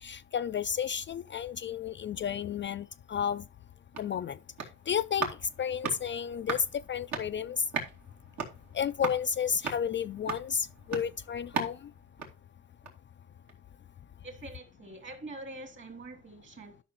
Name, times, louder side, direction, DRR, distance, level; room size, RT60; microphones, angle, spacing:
voice 1, 0.0-3.4 4.0-4.4 4.9-5.3 5.6-7.6 8.7-11.8, left 7 dB, 40° left, 0.4 m, -32 dB
sound 1, 3.6-13.1 13.5-13.6, right 5 dB, 65° right, 2.7 m, -39 dB
voice 2, 14.2-16.8, right 2 dB, 40° right, 3.1 m, -45 dB
12.0 x 5.9 x 3.1 m
cardioid pair, 90°, 30 cm